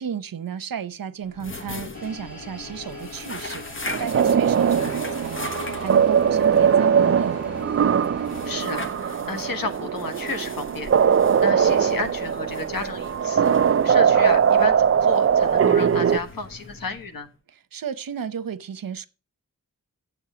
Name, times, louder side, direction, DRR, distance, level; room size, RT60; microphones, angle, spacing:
voice 1, 0.0-5.5 5.8-7.4 17.5-19.1, right 7 dB, 80° right, 0.8 m, -33 dB
sound 1, 1.2-17.4, left 3 dB, 35° left, 1.0 m, -40 dB
sound 2, 1.9-8.5, left 2 dB, 60° left, 4.1 m, -40 dB
sound 3, 3.9-16.2, right 7 dB, 45° right, 0.4 m, -20 dB
voice 2, 8.4-11.1 11.4-13.5 13.8-17.3, left 3 dB, 85° left, 1.6 m, -32 dB
9.3 x 7.2 x 5.0 m
wide cardioid pair, 80°, 34 cm